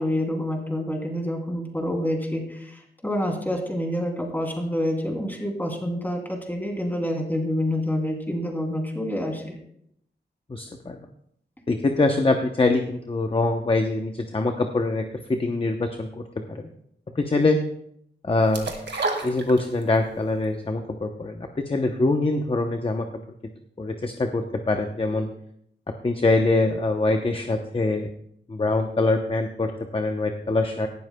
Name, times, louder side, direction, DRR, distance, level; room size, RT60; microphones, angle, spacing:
voice 1, 0.0-9.6, left 1 dB, 10° left, 0 dB, 3.0 m, -27 dB
voice 2, 10.5-11.0 11.7-16.2 16.5-16.7 17.2-17.6 18.2-18.7 19.2-23.1 23.8-25.3 26.0-28.1 28.5-30.9, left 2 dB, 30° left, 5 dB, 0.8 m, -24 dB
sound 1, 18.5-20.1 20.4-20.5, right 3 dB, 70° right, 2.0 m, -29 dB
17.5 x 12.5 x 2.3 m, 0.71 s
wide cardioid pair, 95°, 19 cm